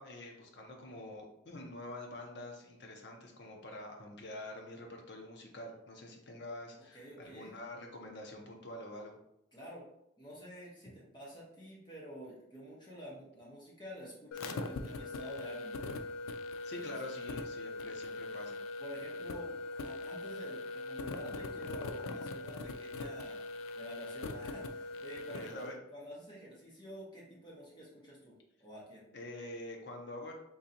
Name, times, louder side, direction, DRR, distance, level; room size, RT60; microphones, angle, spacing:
voice 1, 0.0-9.2 16.6-18.6 25.3-25.8 29.1-30.3, left 1 dB, 55° left, 1 dB, 0.7 m, -46 dB
voice 2, 6.9-7.5 9.5-9.8 10.2-15.9 16.7-16.9 18.8-23.4 23.8-25.6 25.9-28.3 28.6-29.1, equal, 20° left, -5 dB, 1.0 m, -49 dB
sound 1, 14.3-25.6, left 2 dB, 85° left, 0.4 m, -41 dB
3.9 x 2.8 x 2.8 m, 0.81 s
head